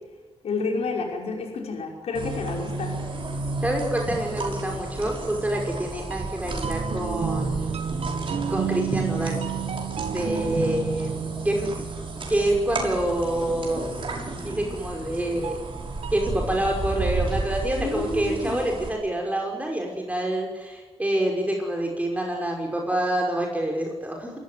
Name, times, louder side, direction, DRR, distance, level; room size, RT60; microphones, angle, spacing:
voice 1, 0.4-3.0 17.7-18.6, left 3 dB, 90° left, 1 dB, 5.5 m, -29 dB
sound 1, 2.1-18.9, right 2 dB, 55° right, 6.4 m, -32 dB
voice 2, 3.6-7.8 8.5-9.4 10.1-11.2 11.4-11.7 12.3-13.9 14.4-15.6 16.1-24.3, right 1 dB, 15° right, 1 dB, 5.6 m, -27 dB
sound 2, 5.5-13.2 15.4-16.3, right 8 dB, 75° right, 1.5 m, -32 dB
28.0 x 15.5 x 9.4 m, 1.3 s
cardioid pair, 85°, 11 cm